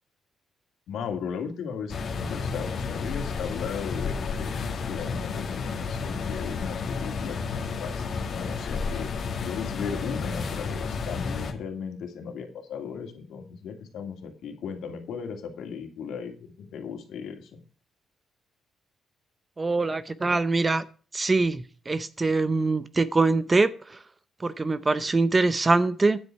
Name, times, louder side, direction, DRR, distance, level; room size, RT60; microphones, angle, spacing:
voice 1, 0.9-9.1 9.4-17.6, left 6 dB, 75° left, 2.5 m, -37 dB
sound 1, 1.9-11.5, left 5 dB, 45° left, 1.9 m, -31 dB
voice 2, 19.6-20.9 21.1-24.0 24.4-26.2, right 3 dB, 20° right, 0.5 m, -23 dB
9.6 x 8.1 x 4.6 m
cardioid pair, 160°, 0 cm